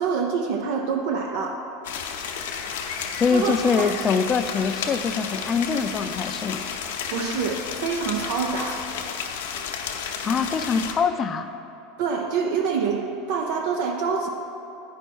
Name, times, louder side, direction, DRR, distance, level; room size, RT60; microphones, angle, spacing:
voice 1, 0.0-1.6 3.0-3.9 7.1-8.8 12.0-14.3, right 5 dB, 70° right, 3 dB, 0.6 m, -26 dB
sound 1, 1.8-10.9, left 7 dB, 85° left, 0.7 m, -32 dB
voice 2, 3.2-6.6 10.2-11.5, left 5 dB, 30° left, 9 dB, 0.4 m, -24 dB
9.2 x 5.5 x 4.6 m, 3.0 s
supercardioid pair, 115°, 0 cm